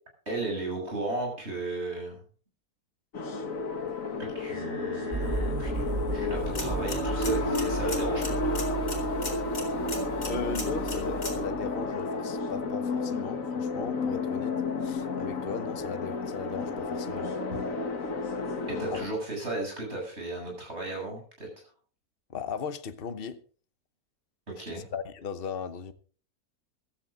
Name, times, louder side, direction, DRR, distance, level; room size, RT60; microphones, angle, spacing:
voice 1, 0.3-2.2 4.2-8.4 17.5-17.6 18.7-21.5 24.5-24.8, right 2 dB, 45° right, 8.5 m, -35 dB
sound 1, 3.1-19.1, left 3 dB, 60° left, 2.0 m, -32 dB
sound 2, 5.1-11.9, right 3 dB, 25° right, 1.4 m, -35 dB
sound 3, 6.4-11.4, left 3 dB, 85° left, 4.7 m, -40 dB
voice 2, 10.2-17.3 18.9-19.0 22.3-23.4 24.7-25.9, left 6 dB, 40° left, 1.2 m, -37 dB
16.0 x 14.0 x 3.9 m
omnidirectional pair, 1.6 m